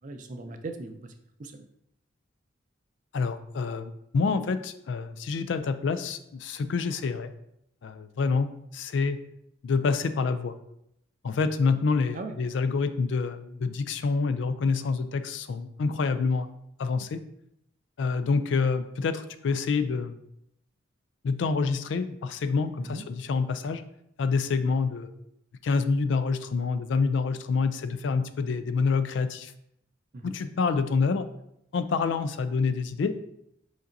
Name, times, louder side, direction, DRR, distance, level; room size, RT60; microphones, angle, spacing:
voice 1, 0.0-1.1 1.4-1.6 12.1-12.3 22.8-23.0 30.1-30.4, right 2 dB, 40° right, 7 dB, 0.4 m, -38 dB
voice 2, 3.1-7.3 7.8-9.2 9.6-10.5 11.2-16.5 16.8-17.2 18.0-20.2 21.2-23.8 24.2-25.1 25.6-29.5 30.2-31.3 31.7-33.1, left 4 dB, 65° left, 11 dB, 0.3 m, -27 dB
5.0 x 4.0 x 2.6 m, 0.77 s
head